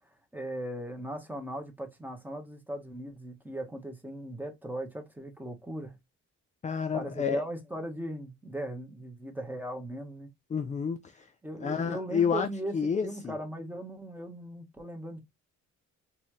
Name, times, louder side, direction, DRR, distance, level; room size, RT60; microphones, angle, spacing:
voice 1, 0.3-6.0 6.9-10.3 11.4-15.2, right 1 dB, 5° right, 1.2 m, -38 dB
voice 2, 6.6-7.4 10.5-11.3 11.6-12.5 12.7-13.4, left 6 dB, 25° left, 0.4 m, -29 dB
4.1 x 2.6 x 3.1 m
cardioid pair, 90°, 30 cm